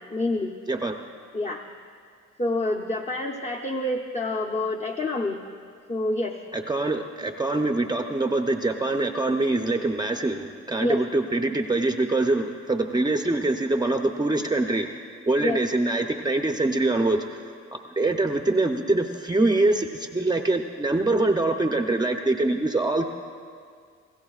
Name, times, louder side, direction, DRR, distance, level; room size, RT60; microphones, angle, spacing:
voice 1, 0.1-0.6 1.3-1.6 2.4-5.4 5.9-6.4 10.8-11.0 15.4-15.6, left 2 dB, 25° left, 1 dB, 0.8 m, -27 dB
voice 2, 0.7-1.0 6.5-14.9 15.3-17.4 18.0-23.0, right 2 dB, 15° right, 4 dB, 0.6 m, -24 dB
25.0 x 15.5 x 2.4 m, 2.1 s
cardioid pair, 90°, 30 cm